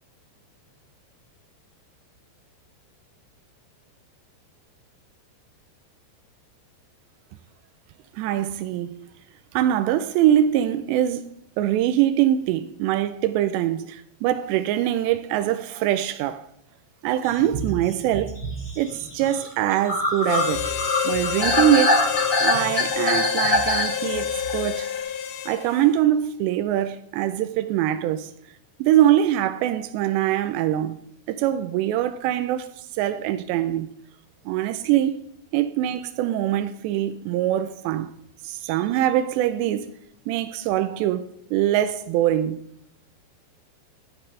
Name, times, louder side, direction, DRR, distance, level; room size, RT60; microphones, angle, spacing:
voice 1, 8.1-9.0 9.5-11.3 11.6-16.5 17.0-18.4 18.8-22.1 22.4-24.9 25.5-28.3 28.8-31.0 31.3-33.9 34.5-35.2 35.5-38.1 38.4-39.9 40.3-42.6, right 12 dB, 90° right, 2.5 m, -23 dB
sound 1, 17.2-25.0, left 1 dB, 20° left, 3.7 m, -25 dB
Harmonica, 20.2-25.9, left 11 dB, 80° left, 3.5 m, -28 dB
12.5 x 10.0 x 3.3 m
omnidirectional pair, 5.7 m